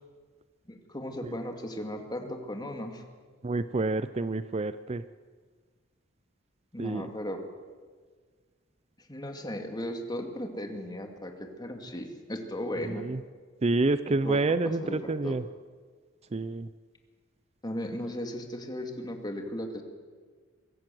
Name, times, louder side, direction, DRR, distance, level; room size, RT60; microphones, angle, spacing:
voice 1, 0.7-3.0 6.7-7.4 9.1-13.1 14.1-14.4 14.8-15.4 17.6-19.8, left 1 dB, 20° left, 4 dB, 2.5 m, -36 dB
voice 2, 3.4-5.0 6.8-7.1 12.9-13.2 13.6-15.4 16.3-16.7, right 2 dB, 35° right, 13 dB, 0.5 m, -28 dB
23.5 x 15.5 x 7.7 m, 1.5 s
head